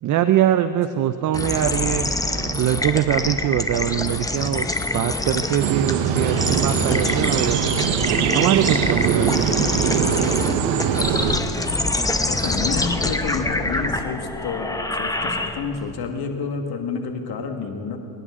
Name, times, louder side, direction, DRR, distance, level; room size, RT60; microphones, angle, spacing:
voice 1, 0.0-7.6 8.3-9.5, right 11 dB, 40° right, 11 dB, 0.5 m, -22 dB
sound 1, 1.3-15.9, left 2 dB, 10° left, 0.7 m, -25 dB
sound 2, 5.6-11.4, right 7 dB, 75° right, 1.2 m, -22 dB
voice 2, 12.3-18.0, left 5 dB, 55° left, 4 dB, 1.7 m, -29 dB
24.5 x 10.5 x 3.7 m, 2.8 s
supercardioid pair, 100°, 46 cm